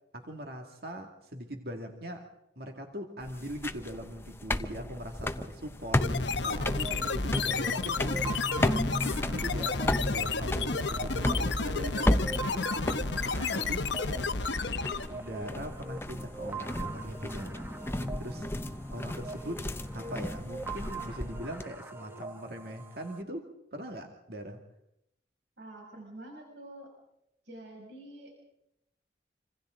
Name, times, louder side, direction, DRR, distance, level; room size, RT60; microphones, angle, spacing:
voice 1, 0.1-2.3 2.6-6.1 6.4-13.0 13.3-14.3 15.1-17.7 18.2-18.5 18.9-19.7 19.9-24.6, equal, 55° right, 3 dB, 2.3 m, -41 dB
sound 1, 3.2-21.6, left 1 dB, 15° left, 0.7 m, -34 dB
sound 2, 6.0-15.2, left 4 dB, 75° left, 1.0 m, -31 dB
sound 3, 6.7-23.2, right 4 dB, 10° right, 1.1 m, -44 dB
voice 2, 25.6-26.9 27.4-28.3, right 1 dB, 75° right, 0 dB, 6.5 m, -47 dB
27.0 x 26.0 x 3.9 m, 0.81 s
head